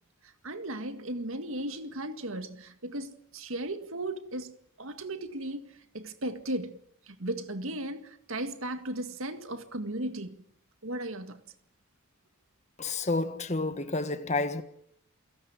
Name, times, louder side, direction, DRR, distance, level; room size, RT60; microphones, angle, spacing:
voice 1, 0.2-6.8 7.1-10.4 10.8-11.4, right 1 dB, 65° right, 2.0 m, -36 dB
voice 2, 12.8-14.6, left 3 dB, 30° left, 1.4 m, -30 dB
28.5 x 17.5 x 8.8 m
head